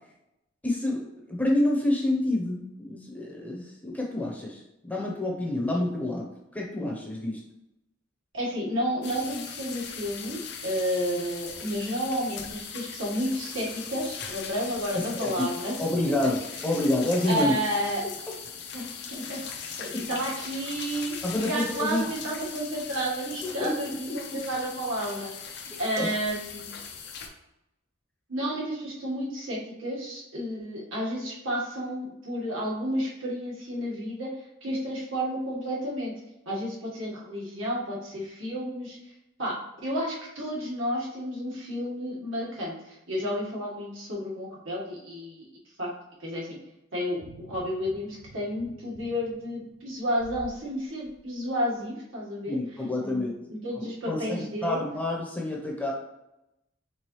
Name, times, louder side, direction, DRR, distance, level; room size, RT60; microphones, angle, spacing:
voice 1, 0.6-7.4 14.9-15.3 15.8-17.5 19.9-20.0 21.2-22.0 23.4-23.7 26.0-26.1 52.5-53.3 53.7-55.9, left 1 dB, 10° left, -2 dB, 0.8 m, -28 dB
voice 2, 8.3-15.7 17.3-18.0 18.7-21.1 21.4-26.7 28.3-34.3 34.6-36.1 36.4-39.0 39.4-39.5 39.8-45.4 45.8-45.9 46.2-46.6 46.9-52.6 53.0-54.8, equal, 80° right, -5 dB, 1.5 m, -31 dB
sound 1, 9.0-27.3, left 6 dB, 55° left, 0.6 m, -39 dB
sound 2, 47.1-50.6 51.0-51.2, right 2 dB, 50° right, 0.7 m, -49 dB
4.6 x 3.7 x 3.1 m, 0.89 s
head